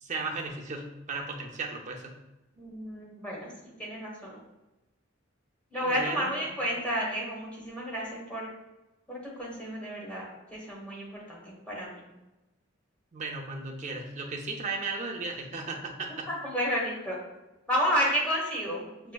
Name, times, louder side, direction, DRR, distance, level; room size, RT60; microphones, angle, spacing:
voice 1, 0.0-2.1 5.7-6.4 13.1-16.3, right 3 dB, 35° right, 1 dB, 0.5 m, -35 dB
voice 2, 2.5-3.5 3.8-4.4 5.7-8.5 9.1-12.1 16.3-17.2 17.7-19.1, equal, 5° left, -5 dB, 1.1 m, -31 dB
6.0 x 2.5 x 2.3 m, 1.0 s
head